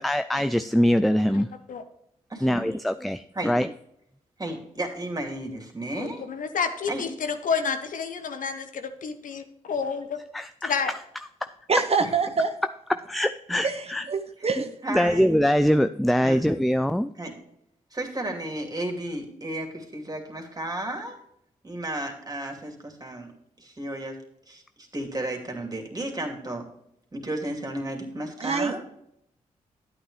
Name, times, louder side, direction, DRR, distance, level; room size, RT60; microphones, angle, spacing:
voice 1, 0.0-1.5 2.4-3.7 10.3-10.7 13.1-14.0 14.9-17.1, equal, ahead, 11 dB, 0.4 m, -23 dB
voice 2, 1.3-1.8 5.9-10.2 10.6-10.9, left 5 dB, 65° left, 8 dB, 0.9 m, -30 dB
voice 3, 2.3-2.8 3.3-3.5 4.4-6.2 6.9-7.0 12.0-12.1 14.4-14.5 14.8-15.2 16.2-16.4 17.2-17.3 17.9-21.2 21.6-23.3 23.6-24.2 24.5-26.7 27.1-28.8, right 1 dB, 25° right, 2 dB, 2.7 m, -33 dB
voice 4, 11.7-12.5 13.6-14.7 28.4-28.7, right 4 dB, 45° right, 7 dB, 1.0 m, -25 dB
9.2 x 8.6 x 3.3 m, 0.75 s
supercardioid pair, 45°, 15 cm